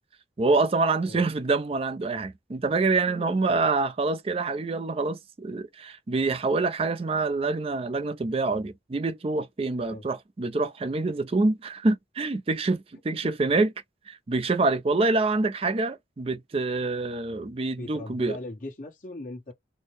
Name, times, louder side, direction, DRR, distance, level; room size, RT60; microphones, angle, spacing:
voice 1, 0.4-13.7 14.1-18.4, right 3 dB, 30° right, 0.4 m, -26 dB
voice 2, 3.1-3.5 9.8-10.1 13.1-13.5 17.7-19.5, left 2 dB, 50° left, 1.2 m, -40 dB
4.3 x 2.1 x 3.1 m
head